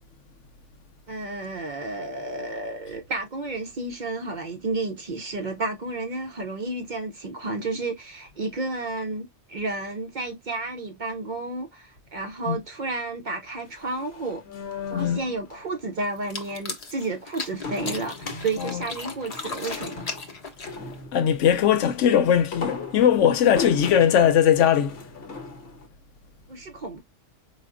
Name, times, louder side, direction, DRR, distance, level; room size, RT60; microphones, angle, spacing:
voice 1, 1.1-14.4 14.9-20.1 26.5-27.0, right 3 dB, 50° right, 0.6 m, -31 dB
sound 1, 13.7-15.6 17.6-21.5 22.3-25.9, left 4 dB, 55° left, 1.0 m, -37 dB
voice 2, 14.9-15.2 18.6-18.9 21.1-25.0, left 9 dB, 80° left, 0.9 m, -20 dB
sound 2, 16.2-21.0, left 4 dB, 40° left, 0.6 m, -37 dB
4.4 x 2.3 x 2.4 m
omnidirectional pair, 1.2 m